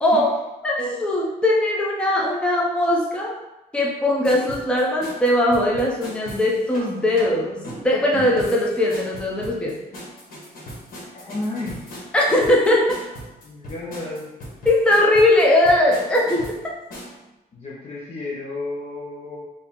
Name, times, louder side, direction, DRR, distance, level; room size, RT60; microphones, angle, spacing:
voice 1, 0.0-0.3 0.6-3.3 3.7-9.7 12.1-13.0 14.7-16.5, left 1 dB, 5° left, -3 dB, 0.5 m, -20 dB
sound 1, 4.2-17.2, equal, 60° left, 1.4 m, -38 dB
voice 2, 11.1-11.8 13.4-14.3 17.5-19.4, left 2 dB, 40° left, -6 dB, 0.8 m, -32 dB
4.6 x 2.5 x 3.6 m, 0.99 s
cardioid pair, 160°, 16 cm